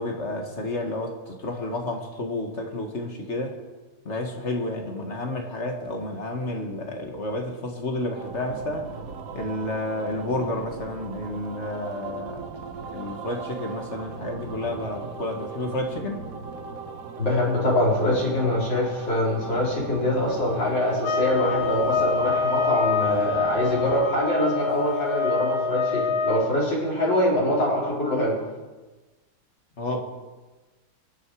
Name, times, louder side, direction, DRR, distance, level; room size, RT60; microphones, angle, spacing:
voice 1, 0.0-3.6 4.1-8.9 9.3-12.4 12.9-16.2 29.8-30.0, left 2 dB, 35° left, 2 dB, 1.9 m, -30 dB
sound 1, 8.2-24.1, right 5 dB, 50° right, 1.3 m, -38 dB
voice 2, 17.2-28.3, left 1 dB, 65° left, -5 dB, 4.9 m, -24 dB
sound 2, 21.0-26.4, left 4 dB, 85° left, 2.4 m, -26 dB
23.5 x 9.2 x 4.8 m, 1.2 s
omnidirectional pair, 2.1 m